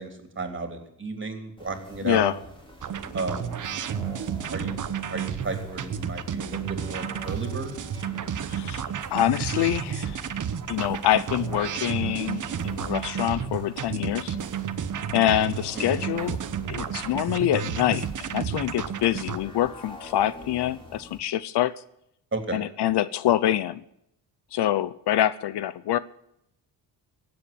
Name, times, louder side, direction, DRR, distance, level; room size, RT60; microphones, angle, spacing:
voice 1, 0.0-2.3 3.1-3.6 4.5-4.8 5.1-7.8 15.7-16.0 22.3-22.6, right 3 dB, 25° right, 3.4 m, -33 dB
sound 1, 1.6-21.2, left 1 dB, 10° left, 4.0 m, -45 dB
voice 2, 2.0-2.3 8.5-8.9 9.1-10.2 10.7-14.4 15.1-16.4 16.7-21.8 22.5-23.8 24.5-26.0, left 12 dB, 65° left, 0.8 m, -25 dB
sound 2, 2.8-19.4, right 8 dB, 45° right, 1.0 m, -32 dB
16.5 x 7.9 x 8.6 m
cardioid pair, 95°, 44 cm